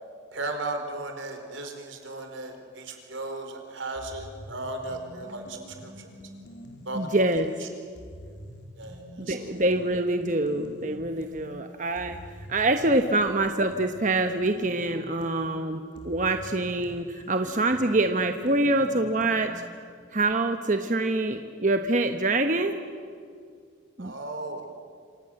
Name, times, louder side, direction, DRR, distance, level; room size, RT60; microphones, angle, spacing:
voice 1, 0.3-6.1 6.8-7.7 8.8-9.5 11.5-11.6 19.7-19.8 24.0-24.7, right 2 dB, 85° right, 5 dB, 4.6 m, -36 dB
sound 1, 4.0-7.5 8.0-11.5 12.0-19.8, equal, 65° left, 4.7 m, -45 dB
voice 2, 6.9-7.5 9.2-12.2 12.5-19.5 20.1-22.8 24.0-24.1, right 2 dB, 40° right, 6 dB, 1.1 m, -25 dB
27.0 x 27.0 x 7.8 m, 2.2 s
head